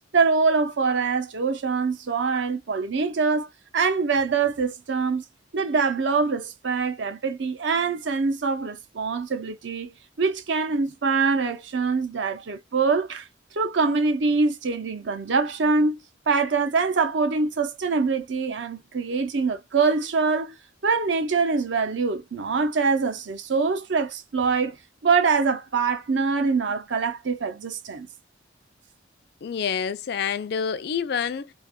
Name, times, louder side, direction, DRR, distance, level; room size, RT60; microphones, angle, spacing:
voice 1, 0.1-5.2 5.5-9.9 10.2-13.3 13.5-16.0 16.3-20.6 20.8-24.8 25.0-28.1, right 4 dB, 75° right, 0.6 m, -24 dB
voice 2, 29.4-31.5, left 7 dB, 55° left, 0.4 m, -27 dB
3.2 x 2.1 x 2.3 m
head